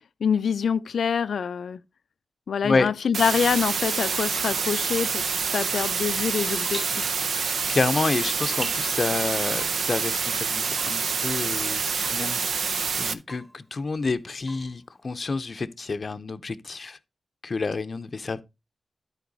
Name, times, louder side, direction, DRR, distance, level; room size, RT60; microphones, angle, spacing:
voice 1, 0.2-1.8 2.5-5.2 5.5-7.1, left 7 dB, 85° left, 0.5 m, -25 dB
Water tap faucet / Drip, 3.1-15.2, equal, 5° right, 1.2 m, -46 dB
sound 1, 3.1-13.1, right 5 dB, 75° right, 0.6 m, -27 dB
voice 2, 7.4-17.0 17.4-18.4, left 3 dB, 45° left, 0.6 m, -29 dB
13.0 x 4.5 x 4.0 m
wide cardioid pair, 130°, 0 cm